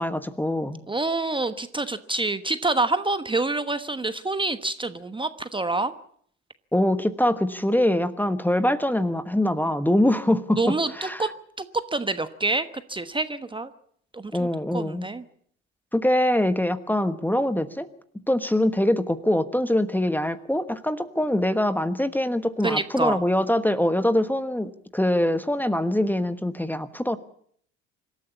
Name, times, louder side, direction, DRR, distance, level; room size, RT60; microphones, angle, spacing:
voice 1, 0.0-0.8 6.7-11.2 14.3-15.1 15.9-17.9 18.3-27.2, left 1 dB, 5° left, 12 dB, 1.2 m, -23 dB
voice 2, 0.9-5.9 10.6-11.3 11.6-13.7 14.1-14.5 14.7-15.2 22.6-23.2, right 2 dB, 15° right, 11 dB, 1.2 m, -27 dB
25.5 x 13.5 x 8.4 m, 0.64 s
figure-of-eight pair, 60°, 36 cm